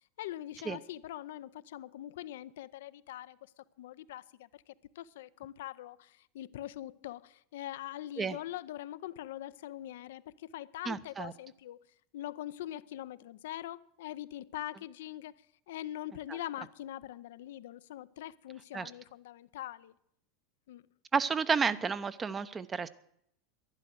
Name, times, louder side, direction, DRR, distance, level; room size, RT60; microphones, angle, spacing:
voice 1, 0.2-11.8 12.1-20.0 20.7-20.9, left 13 dB, 75° left, 0.5 m, -43 dB
voice 2, 10.9-11.3 18.7-18.9 21.1-22.9, right 5 dB, 25° right, 0.8 m, -31 dB
11.5 x 11.0 x 7.9 m
hypercardioid pair, 90°, 0 cm